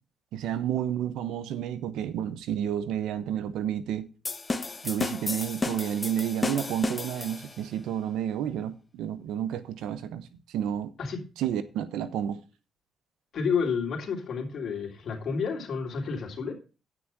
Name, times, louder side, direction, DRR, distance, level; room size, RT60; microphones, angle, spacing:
voice 1, 0.3-4.1 4.8-10.2 10.5-10.9 11.4-12.4, right 10 dB, 85° right, 0.9 m, -30 dB
sound 1, 4.2-7.7, left 3 dB, 25° left, 1.1 m, -32 dB
voice 2, 13.3-16.5, left 5 dB, 60° left, 3.3 m, -30 dB
9.3 x 6.0 x 6.1 m
cardioid pair, 90°, 0 cm